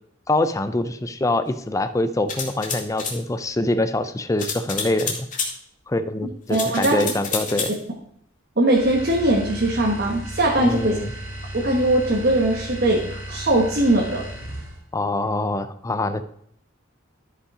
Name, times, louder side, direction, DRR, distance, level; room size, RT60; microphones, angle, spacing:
voice 1, 0.3-5.3 5.9-7.7 10.6-11.1 14.9-16.2, left 2 dB, 15° left, 10 dB, 0.4 m, -24 dB
sound 1, 2.3-3.2 4.4-5.5 6.5-7.8, left 5 dB, 40° left, 2.1 m, -29 dB
voice 2, 6.5-7.0 8.6-11.0 11.5-14.2, right 1 dB, 50° right, -1 dB, 1.4 m, -20 dB
sound 2, 8.7-14.9, right 1 dB, 75° right, 2.8 m, -35 dB
12.5 x 5.6 x 4.9 m, 0.68 s
head